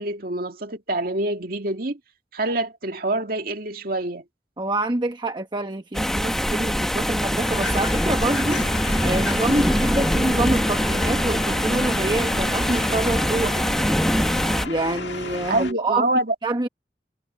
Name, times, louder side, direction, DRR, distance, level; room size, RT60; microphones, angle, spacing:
voice 1, 0.0-2.0 2.3-4.2 15.5-16.4, right 2 dB, 55° right, 2.1 m, -26 dB
voice 2, 4.6-8.7 9.0-13.7 14.6-16.1 16.4-16.7, right 2 dB, 25° right, 1.1 m, -26 dB
sound 1, 5.9-14.7, equal, ahead, 1.0 m, -23 dB
sound 2, 7.4-15.7, left 4 dB, 90° left, 1.8 m, -34 dB
head